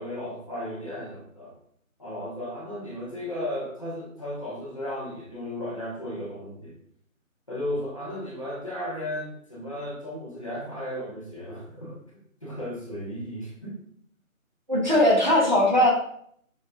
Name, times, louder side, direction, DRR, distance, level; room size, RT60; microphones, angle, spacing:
voice 1, 0.0-1.5 2.0-6.8 7.5-12.0 12.4-13.8, left 1 dB, 25° left, -7 dB, 1.5 m, -35 dB
voice 2, 14.7-15.9, left 1 dB, 35° right, -3 dB, 1.3 m, -19 dB
6.2 x 4.9 x 3.5 m, 0.66 s
figure-of-eight pair, 180°, 42 cm